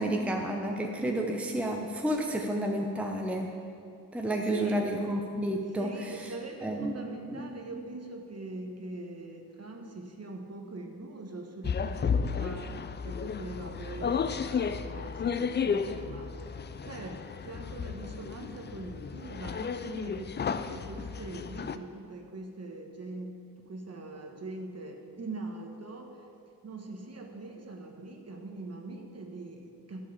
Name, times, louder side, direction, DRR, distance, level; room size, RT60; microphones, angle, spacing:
voice 1, 0.0-3.5 4.1-6.3 6.6-6.9 7.3-7.6, right 1 dB, 5° right, 1 dB, 0.8 m, -31 dB
voice 2, 4.5-4.9 5.8-12.7 13.0-26.2 26.6-30.1, right 2 dB, 40° right, 3 dB, 1.4 m, -42 dB
sound 1, 11.6-21.8, left 6 dB, 30° left, 0.4 m, -33 dB
11.5 x 4.8 x 6.9 m, 2.5 s
cardioid pair, 70°, 39 cm